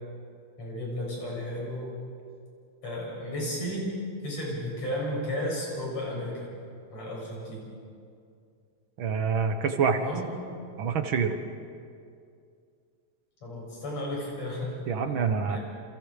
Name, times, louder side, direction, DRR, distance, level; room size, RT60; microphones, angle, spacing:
voice 1, 0.6-1.9 2.8-3.9 4.2-6.5 6.9-7.7 9.9-10.3 13.4-14.8 15.5-15.6, equal, 60° left, -3 dB, 8.8 m, -33 dB
voice 2, 9.0-10.0 10.8-11.3 14.9-15.6, right 6 dB, 55° right, 7 dB, 1.7 m, -26 dB
28.5 x 28.5 x 5.1 m, 2.4 s
omnidirectional pair, 3.4 m